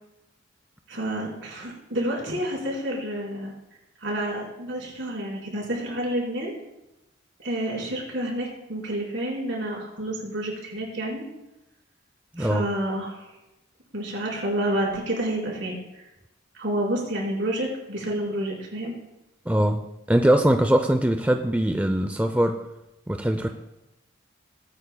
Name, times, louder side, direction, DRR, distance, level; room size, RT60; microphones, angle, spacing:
voice 1, 0.9-3.5 4.0-6.5 7.4-11.2 12.4-13.3 13.9-16.0 16.5-18.9, right 1 dB, 70° right, -3 dB, 4.1 m, -29 dB
voice 2, 12.3-12.7 19.5-22.6 23.1-23.5, right 1 dB, 10° right, 7 dB, 0.4 m, -22 dB
21.5 x 8.9 x 2.2 m, 0.94 s
head